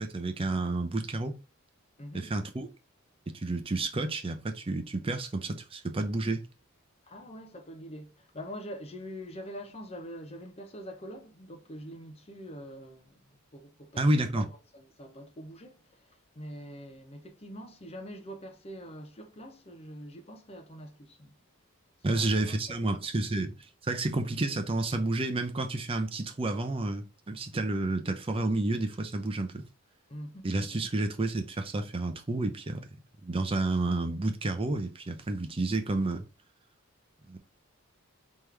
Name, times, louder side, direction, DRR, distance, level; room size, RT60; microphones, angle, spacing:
voice 1, 0.0-1.3 2.1-2.7 3.3-6.4 14.0-14.5 22.0-23.5 23.8-29.6 30.4-32.8 33.2-36.2 37.3-37.4, right 2 dB, 25° right, 0.6 m, -30 dB
voice 2, 2.0-2.3 7.0-14.1 14.3-21.3 22.1-22.8 30.1-30.5, equal, 30° left, 0.8 m, -44 dB
3.7 x 3.1 x 3.3 m
head